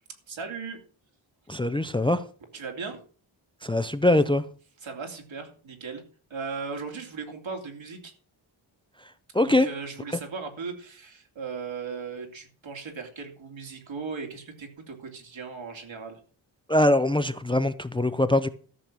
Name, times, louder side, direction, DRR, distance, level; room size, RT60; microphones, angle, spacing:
voice 1, 0.3-0.8 2.5-3.0 4.8-6.0 6.3-8.1 9.4-16.2, right 5 dB, 70° right, 3.1 m, -37 dB
voice 2, 1.5-2.2 3.6-4.4 9.3-9.7 16.7-18.5, left 1 dB, 10° left, 0.5 m, -22 dB
13.5 x 6.9 x 6.1 m
wide cardioid pair, 150°, 47 cm